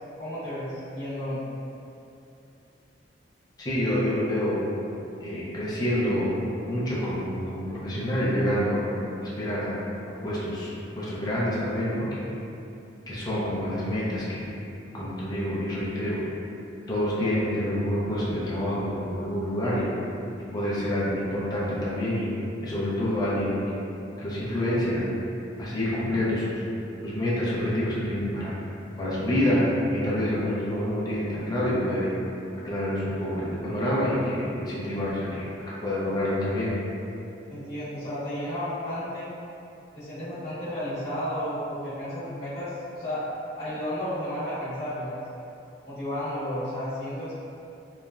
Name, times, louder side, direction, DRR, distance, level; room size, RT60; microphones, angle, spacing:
voice 1, 0.2-1.5 37.5-39.3 39.9-43.2 43.6-45.2 45.8-47.3, equal, 50° left, -14 dB, 0.9 m, -32 dB
voice 2, 3.6-4.6 5.2-6.4 6.6-8.8 9.2-9.7 10.2-12.2 13.1-14.5 14.9-16.2 16.9-19.9 20.4-22.3 22.6-23.8 24.2-25.0 25.6-26.6 27.0-28.5 29.0-29.6 29.9-32.1 32.6-36.7, left 1 dB, 20° left, -8 dB, 0.5 m, -27 dB
2.9 x 2.3 x 2.3 m, 2.8 s
head